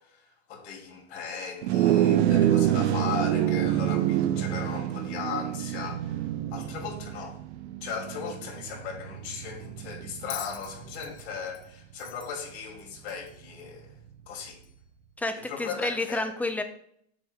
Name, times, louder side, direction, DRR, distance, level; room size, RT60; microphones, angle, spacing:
voice 1, 0.0-7.4 7.8-13.9 14.3-14.6 15.5-16.3, left 6 dB, 70° left, 1 dB, 2.6 m, -37 dB
sound 1, 1.6-11.2, right 11 dB, 70° right, 0.7 m, -27 dB
Bell, 10.3-13.5 14.6-14.7, left 13 dB, 90° left, 0.7 m, -44 dB
voice 2, 15.2-16.6, left 2 dB, 5° left, 7 dB, 0.4 m, -30 dB
7.9 x 7.0 x 2.3 m, 0.65 s
supercardioid pair, 135°, 34 cm